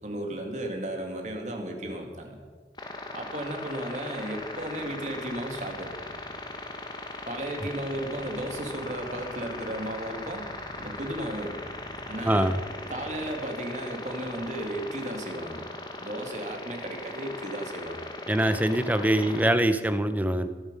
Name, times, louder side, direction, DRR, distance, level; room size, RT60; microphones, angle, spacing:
voice 1, 0.0-2.4 3.1-5.9 7.3-10.5 10.7-11.7 12.1-12.5 12.9-15.6 16.0-18.1 19.2-19.3, right 1 dB, 40° right, 2 dB, 2.2 m, -34 dB
sound 1, 2.8-19.5, left 2 dB, 25° left, 1.4 m, -39 dB
voice 2, 12.2-12.6 18.3-20.5, right 1 dB, 10° right, 10 dB, 0.6 m, -23 dB
23.0 x 7.8 x 5.3 m, 1.5 s
head